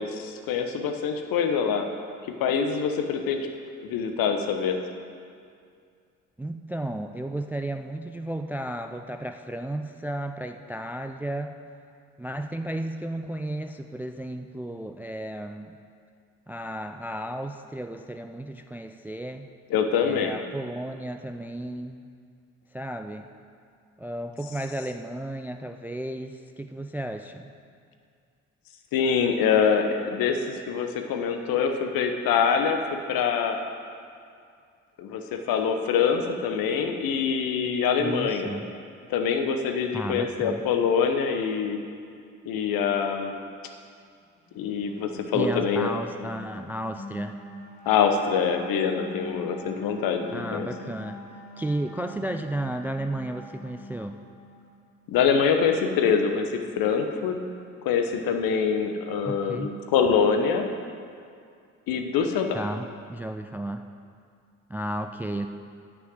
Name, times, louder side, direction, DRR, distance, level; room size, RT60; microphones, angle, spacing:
voice 1, 0.0-1.9 2.4-3.5 3.8-4.8 19.7-20.3 28.9-33.6 35.0-38.6 39.1-41.8 42.4-43.4 44.5-45.9 47.8-50.7 55.1-57.4 57.8-60.7 61.9-62.6, left 6 dB, 60° left, 5 dB, 1.1 m, -25 dB
voice 2, 6.4-11.6 12.2-15.8 16.5-19.5 20.0-22.0 22.7-23.3 24.0-27.5 38.0-38.7 39.9-40.6 45.3-47.4 50.3-51.2 51.6-54.2 59.2-59.7 62.5-63.9 64.7-65.5, right 1 dB, 5° right, 7 dB, 0.3 m, -33 dB
sound 1, 44.4-54.9, left 1 dB, 15° left, 3.1 m, -44 dB
9.6 x 6.2 x 7.8 m, 2.3 s
figure-of-eight pair, 45°, 40 cm